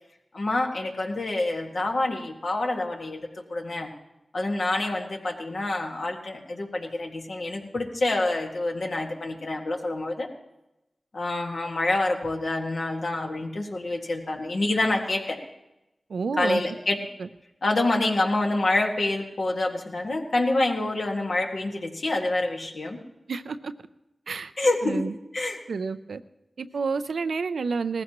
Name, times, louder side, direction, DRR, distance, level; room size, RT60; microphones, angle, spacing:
voice 1, 0.3-3.9 4.3-10.3 11.1-15.4 16.4-17.0 17.6-23.0 24.6-25.0 25.3-25.6, left 2 dB, 75° left, 1 dB, 1.8 m, -27 dB
voice 2, 16.1-16.6 17.2-17.3 23.3-23.7 24.3-24.5 24.8-25.1 25.7-26.2 26.6-28.0, right 4 dB, 90° right, 11 dB, 0.5 m, -29 dB
18.5 x 15.0 x 3.0 m, 0.93 s
cardioid pair, 45°, 0 cm